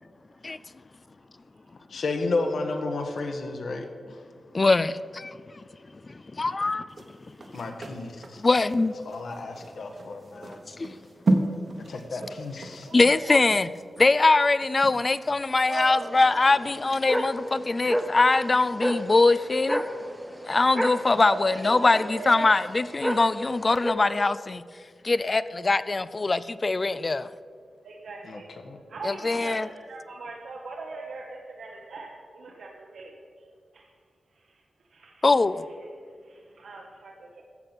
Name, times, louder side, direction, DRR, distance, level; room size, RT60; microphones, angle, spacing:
voice 1, 1.9-4.2 7.5-8.4 9.0-10.6 11.9-12.9 15.7-15.8 28.2-28.8, left 3 dB, 65° left, 1.4 m, -32 dB
voice 2, 4.5-5.4 6.1-7.0 8.4-8.9 10.7-11.0 12.9-13.7 14.0-19.8 20.5-24.6 25.0-27.3 29.0-29.7 35.2-35.7, left 3 dB, 25° left, 0.3 m, -22 dB
sound 1, 6.9-15.4 15.8-16.0, right 2 dB, 40° right, 1.2 m, -32 dB
voice 3, 12.9-13.4 15.7-16.1 21.2-22.4 27.8-28.5 28.9-33.5 33.7-33.9 34.3-34.6 34.9-35.3 36.2-37.4, right 3 dB, 75° right, 1.2 m, -39 dB
sound 2, 16.0-23.9, equal, ahead, 0.7 m, -32 dB
13.5 x 8.1 x 6.0 m
wide cardioid pair, 175°, 0 cm